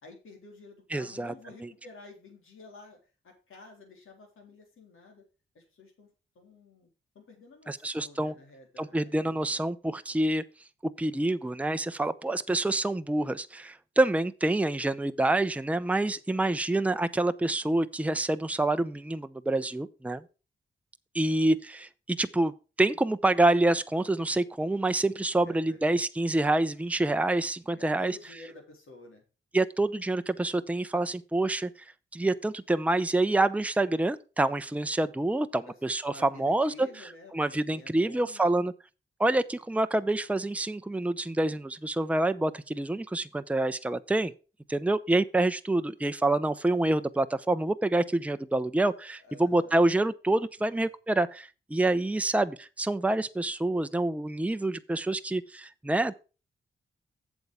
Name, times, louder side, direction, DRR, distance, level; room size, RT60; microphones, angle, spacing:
voice 1, 0.0-5.2 5.5-6.1 6.4-6.9 7.1-9.7 16.0-16.5 21.2-21.4 25.5-25.8 27.7-29.2 35.7-35.8 36.1-38.5 49.2-49.8 50.6-50.9, left 2 dB, 80° left, 3.5 m, -51 dB
voice 2, 0.9-1.3 7.7-8.3 8.8-10.4 11.0-20.2 21.1-22.5 22.8-28.2 29.5-31.7 32.1-36.1 36.4-36.9 37.3-38.7 39.2-44.3 44.7-56.2, right 2 dB, 5° right, 0.7 m, -27 dB
7.9 x 7.2 x 4.8 m
cardioid pair, 55°, 21 cm